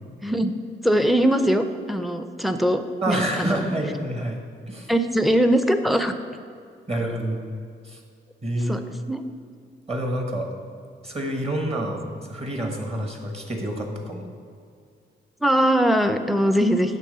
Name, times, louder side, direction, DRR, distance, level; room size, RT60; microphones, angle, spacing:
voice 1, 0.8-3.7 4.9-6.1 8.7-8.8 9.1-9.2 15.4-17.0, equal, ahead, 8 dB, 0.5 m, -21 dB
voice 2, 3.0-4.4 4.7-4.9 6.9-7.4 7.8-8.0 8.4-8.8 9.9-10.5 11.0-12.0 12.3-14.3, right 1 dB, 30° right, 2 dB, 1.2 m, -27 dB
8.4 x 3.4 x 6.6 m, 2.3 s
cardioid pair, 80°, 20 cm